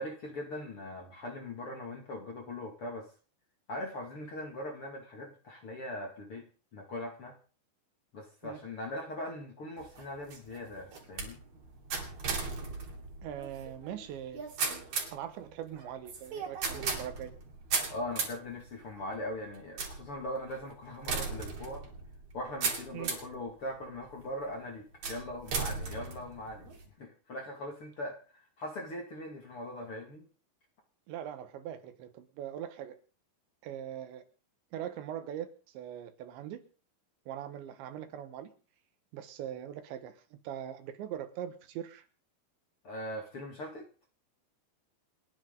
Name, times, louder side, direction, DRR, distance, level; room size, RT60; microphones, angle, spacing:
voice 1, 0.0-3.1 3.7-6.4 6.7-7.3 8.1-11.4 17.9-21.8 22.3-26.7 27.0-30.3 42.8-43.8, left 1 dB, 40° left, 1 dB, 2.5 m, -40 dB
sound 1, 9.8-23.4 24.0-24.4 25.0-26.8, right 4 dB, 45° right, 4.2 m, -37 dB
voice 2, 13.2-14.5 15.1-17.3 22.9-23.1 31.1-33.0 33.6-34.2 34.7-36.6 37.3-38.5 39.1-42.1, right 10 dB, 80° right, 9 dB, 3.7 m, -41 dB
29.5 x 10.0 x 4.0 m, 0.38 s
omnidirectional pair, 5.2 m